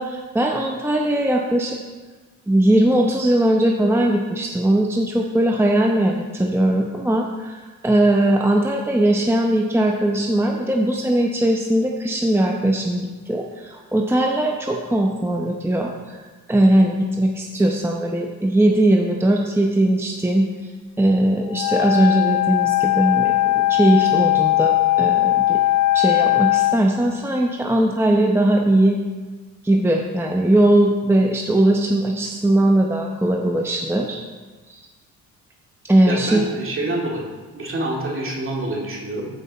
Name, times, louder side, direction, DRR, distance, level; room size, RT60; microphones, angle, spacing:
voice 1, 0.0-1.8 2.5-16.2 16.5-20.5 21.0-25.6 25.9-29.0 29.6-34.2 34.7-34.8 35.9-36.4, right 1 dB, 10° right, 1 dB, 0.8 m, -19 dB
Wind instrument woodwind instrument, 21.5-26.8, left 15 dB, 85° left, 0.5 m, -19 dB
voice 2, 36.1-37.2 37.5-39.3, right 1 dB, 45° right, -2 dB, 2.4 m, -26 dB
14.0 x 4.9 x 4.2 m, 1.3 s
cardioid pair, 90°, 30 cm